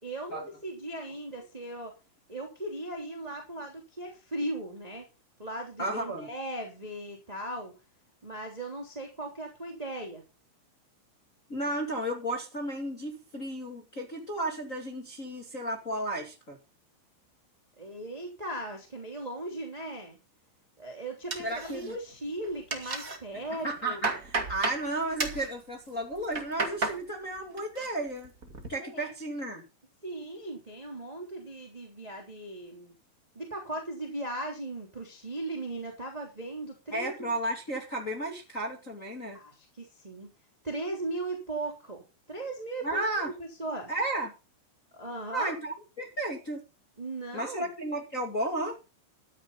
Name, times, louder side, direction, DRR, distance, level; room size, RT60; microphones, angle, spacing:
voice 1, 0.0-1.9 2.3-5.0 5.4-7.7 8.2-10.2 17.8-20.2 20.8-24.0 28.8-29.1 30.0-32.9 33.3-37.3 39.3-40.3 40.6-43.0 43.4-43.9 44.9-45.5 47.0-47.7, right 1 dB, 10° right, 1 dB, 2.2 m, -38 dB
voice 2, 5.8-6.3 11.5-16.6 21.4-21.9 23.3-28.3 28.7-29.6 36.9-39.4 42.8-43.3 43.9-44.3 45.3-46.6 47.3-48.8, right 1 dB, 30° left, 2 dB, 1.6 m, -33 dB
sound 1, 21.3-22.1 22.4-23.2 23.6-24.8 25.2-25.5 26.1-27.0 27.4-27.9 28.2-28.7, right 3 dB, 65° right, 0.8 m, -33 dB
13.0 x 12.5 x 4.0 m, 0.28 s
omnidirectional pair, 5.7 m